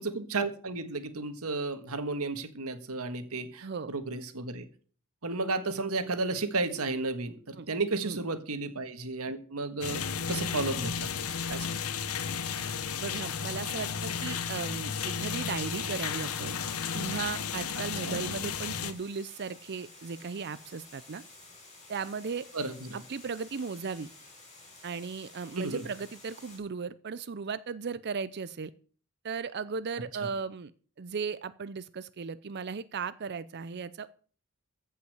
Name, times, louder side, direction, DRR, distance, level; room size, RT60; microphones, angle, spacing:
voice 1, 0.0-4.7 5.2-10.0 10.3-11.8 18.0-18.2 22.5-23.0 25.6-25.8 30.2-30.3, right 3 dB, 80° right, 10 dB, 1.6 m, -33 dB
voice 2, 3.6-3.9 7.6-7.7 8.0-8.2 13.0-16.6 16.9-21.2 21.9-22.5 22.9-24.1 24.8-28.7 29.2-30.7 31.0-34.1, right 5 dB, 50° right, 16 dB, 0.5 m, -36 dB
sound 1, 9.8-18.9, left 7 dB, 85° left, 1.1 m, -33 dB
Water, 14.0-26.6, left 2 dB, 30° left, 5.9 m, -53 dB
15.0 x 5.6 x 7.9 m, 0.43 s
head